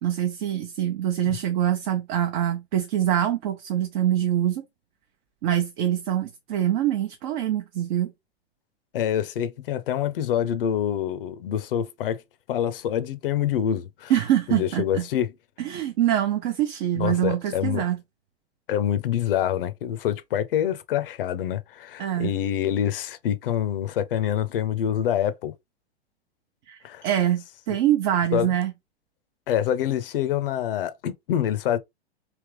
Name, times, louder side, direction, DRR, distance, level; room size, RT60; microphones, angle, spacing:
voice 1, 0.0-4.6 5.4-8.1 14.1-15.1 15.6-18.0 22.0-22.3 26.7-26.8 27.0-28.7, right 11 dB, 45° right, 0.8 m, -24 dB
voice 2, 8.9-12.2 12.5-14.1 14.5-15.3 17.0-17.8 18.7-25.5 26.8-27.0 28.3-28.5 29.5-31.8, left 10 dB, 55° left, 0.6 m, -26 dB
3.4 x 2.9 x 3.3 m
figure-of-eight pair, 105°, 32 cm